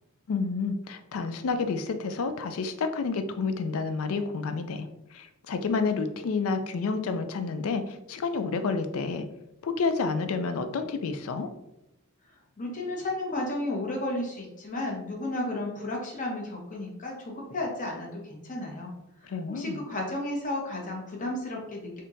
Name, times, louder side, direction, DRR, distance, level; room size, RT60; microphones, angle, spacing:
voice 1, 0.3-9.3 9.6-11.5 19.2-19.8, left 4 dB, 65° left, 8 dB, 0.4 m, -29 dB
voice 2, 12.6-18.9 19.2-22.0, left 1 dB, 35° left, -1 dB, 0.8 m, -33 dB
3.5 x 2.7 x 2.6 m, 0.88 s
head